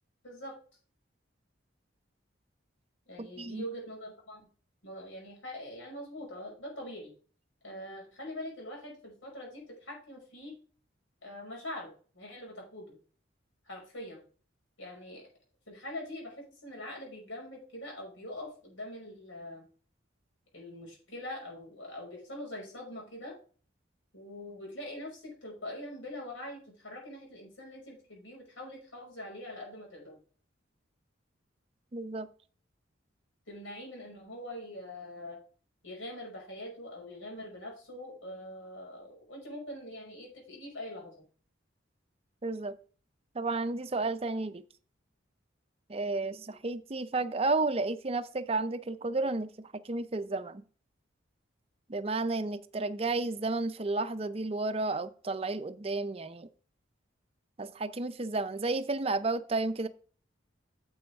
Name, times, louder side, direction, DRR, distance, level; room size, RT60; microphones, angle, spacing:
voice 1, 0.2-0.6 3.1-4.4 4.8-7.1 7.6-10.6 11.2-13.0 13.7-14.2 14.8-15.3 15.7-19.7 20.5-23.4 24.1-30.2 33.5-35.4 35.8-41.2, left 1 dB, 85° left, 5.6 m, -43 dB
voice 2, 3.2-3.7 31.9-32.3 42.4-42.8 43.3-44.6 45.9-50.6 51.9-56.5 57.6-59.9, right 3 dB, 30° right, 0.5 m, -32 dB
9.4 x 7.8 x 3.5 m
head